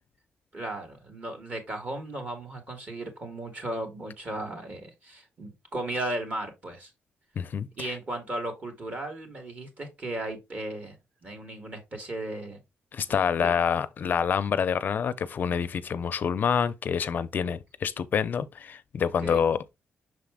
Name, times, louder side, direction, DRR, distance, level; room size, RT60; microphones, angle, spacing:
voice 1, 0.5-6.9 7.8-12.6 13.1-13.6 19.2-19.4, right 1 dB, 35° right, 2.6 m, -36 dB
voice 2, 7.4-7.9 12.9-19.8, left 7 dB, 50° left, 0.5 m, -27 dB
6.4 x 4.1 x 3.6 m
cardioid pair, 135°, 4 cm